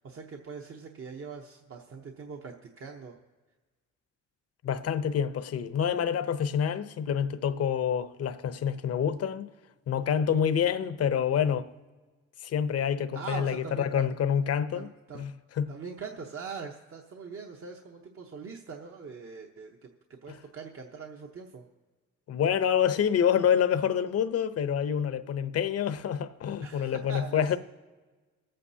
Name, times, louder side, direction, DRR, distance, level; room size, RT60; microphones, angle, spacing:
voice 1, 0.0-3.2 13.1-14.0 14.7-15.2 15.7-21.6 26.6-27.6, right 5 dB, 50° right, 0.9 m, -42 dB
voice 2, 4.6-9.5 9.9-11.7 12.4-14.9 15.1-15.3 15.6-15.7 22.3-27.6, left 8 dB, 55° left, 0.7 m, -27 dB
24.0 x 8.8 x 2.8 m
cardioid pair, 90°, 30 cm